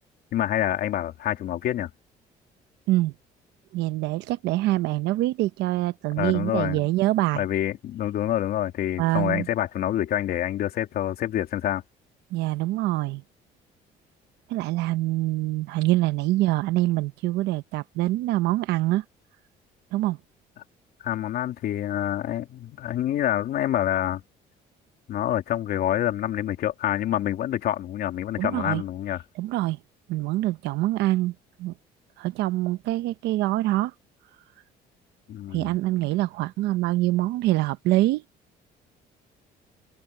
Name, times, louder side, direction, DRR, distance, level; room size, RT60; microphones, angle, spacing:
voice 1, 0.3-1.9 6.2-6.8 7.3-11.8 21.0-24.2 25.1-29.2 35.3-35.7, left 12 dB, 65° left, 3.1 m, -27 dB
voice 2, 3.7-7.4 9.0-9.5 12.3-13.2 14.5-19.0 19.9-20.2 28.4-28.8 29.4-29.8 30.1-31.7 32.2-33.9 35.5-38.2, right 17 dB, 90° right, 1.0 m, -25 dB
cardioid pair, 110°, 17 cm